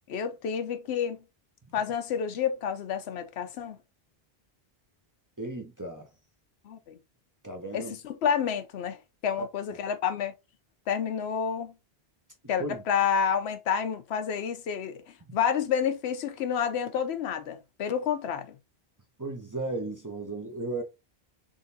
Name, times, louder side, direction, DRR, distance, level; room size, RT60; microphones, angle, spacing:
voice 1, 0.1-1.2 1.7-3.8 6.6-7.0 7.7-10.3 10.9-11.7 12.5-15.0 15.3-18.6, left 7 dB, 85° left, 0.9 m, -29 dB
voice 2, 5.4-6.1 7.4-7.9 9.4-9.5 12.6-12.8 19.2-20.8, right 2 dB, 20° right, 0.7 m, -35 dB
3.7 x 3.3 x 2.6 m
omnidirectional pair, 1.1 m